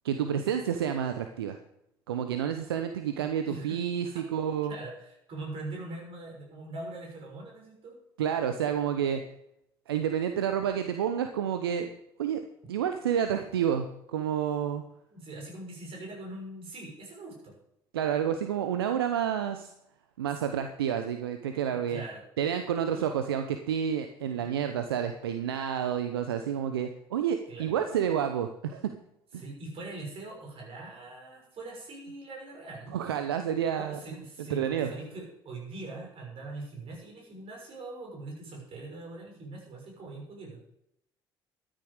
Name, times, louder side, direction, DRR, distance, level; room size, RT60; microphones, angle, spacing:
voice 1, 0.0-1.6 2.1-4.7 8.2-9.2 9.9-11.9 12.2-12.4 12.7-14.8 17.9-19.7 20.2-22.0 22.4-28.9 32.9-34.0 34.5-34.9, right 9 dB, 80° right, 8 dB, 0.8 m, -29 dB
voice 2, 3.4-3.8 4.0-4.2 4.7-8.0 15.1-17.5 21.7-22.2 22.9-23.1 27.5-27.8 29.4-32.9 33.8-40.7, right 2 dB, 50° right, 0 dB, 6.4 m, -42 dB
13.0 x 10.0 x 4.9 m, 0.77 s
hypercardioid pair, 60°, 12 cm